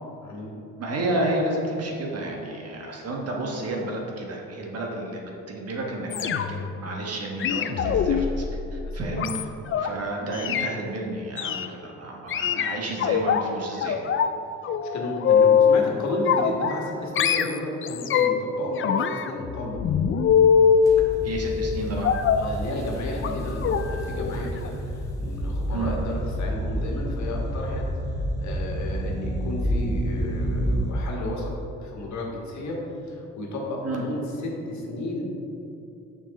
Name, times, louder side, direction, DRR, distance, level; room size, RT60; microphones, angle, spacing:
voice 1, 0.8-8.4 8.7-14.0 21.2-22.1 25.7-26.0 33.8-34.0, right 1 dB, 55° right, -1 dB, 1.4 m, -31 dB
sound 1, 6.1-6.7 7.4-9.9 10.3-10.7 11.4-11.7 12.3-13.4 13.8-14.3 14.6-15.9 16.3-16.9 17.2-18.5 18.8-20.9 22.0-22.5 23.2-23.3 23.6-23.8 24.2-24.4 24.7-24.8, left 7 dB, 45° left, 0.4 m, -22 dB
voice 2, 14.8-19.8 21.0-21.3 22.3-27.8 28.4-31.5 31.8-32.8 33.1-35.2, left 2 dB, 65° left, -1 dB, 1.5 m, -33 dB
sound 2, 20.8-30.9, equal, 10° left, 1.5 m, -29 dB
6.6 x 6.0 x 4.0 m, 2.9 s
cardioid pair, 90°, 30 cm